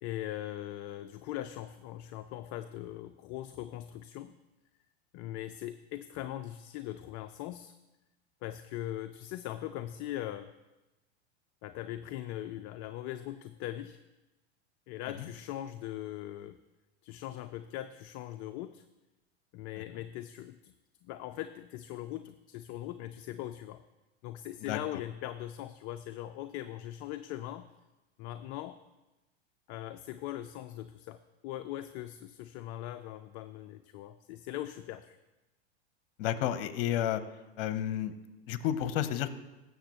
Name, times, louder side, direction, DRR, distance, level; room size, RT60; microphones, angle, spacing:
voice 1, 0.0-4.4 5.1-7.7 8.4-10.5 11.6-14.0 14.9-16.6 17.0-18.9 19.5-20.7 21.0-23.8 24.2-27.7 28.2-28.8 29.7-35.2, left 13 dB, 40° left, 9 dB, 0.4 m, -40 dB
voice 2, 36.2-37.2 37.6-38.1 38.5-39.3, left 11 dB, 60° left, 12 dB, 0.8 m, -31 dB
16.0 x 6.9 x 3.0 m, 1.1 s
hypercardioid pair, 105°, 33 cm